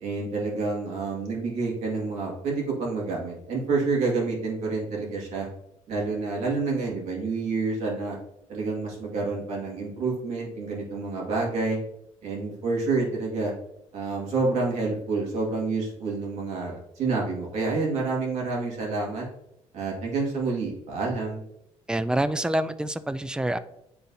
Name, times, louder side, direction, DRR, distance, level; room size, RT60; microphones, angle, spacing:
voice 1, 0.0-5.5 5.9-8.2 8.5-11.8 12.2-13.5 13.9-19.3 19.7-21.4, right 3 dB, 70° right, -2 dB, 2.1 m, -28 dB
voice 2, 21.9-23.6, right 1 dB, 5° right, 13 dB, 0.4 m, -26 dB
9.7 x 3.9 x 2.8 m, 0.79 s
cardioid pair, 110°, 12 cm